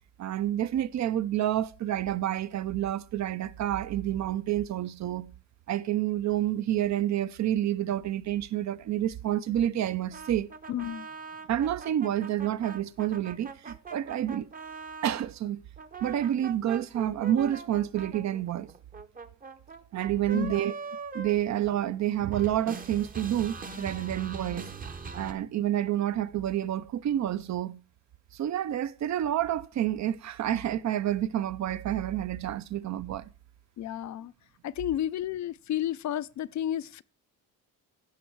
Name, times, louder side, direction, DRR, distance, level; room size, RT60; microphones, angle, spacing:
voice 1, 0.2-5.3 5.7-10.5 11.5-14.5 15.0-15.6 16.0-18.7 19.9-20.7 21.1-24.7 25.1-27.8 28.3-33.3, right 11 dB, 50° right, 0.5 m, -29 dB
sound 1, 10.1-15.3 15.8-22.1 22.3-25.3, right 4 dB, 25° right, 0.8 m, -42 dB
voice 2, 10.7-11.1 20.3-20.6 33.8-34.3 34.6-37.0, left 11 dB, 55° left, 0.4 m, -32 dB
15.5 x 5.4 x 4.6 m
cardioid pair, 140°, 35 cm